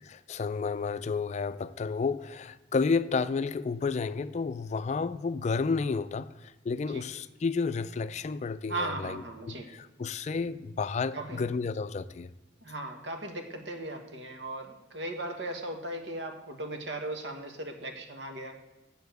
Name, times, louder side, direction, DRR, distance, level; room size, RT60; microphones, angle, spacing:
voice 1, 0.1-9.5 10.0-12.3, left 4 dB, 40° left, 0.4 m, -31 dB
voice 2, 8.7-9.7 11.1-11.5 12.6-18.5, right 1 dB, 80° right, 1.5 m, -37 dB
7.6 x 6.9 x 7.9 m
head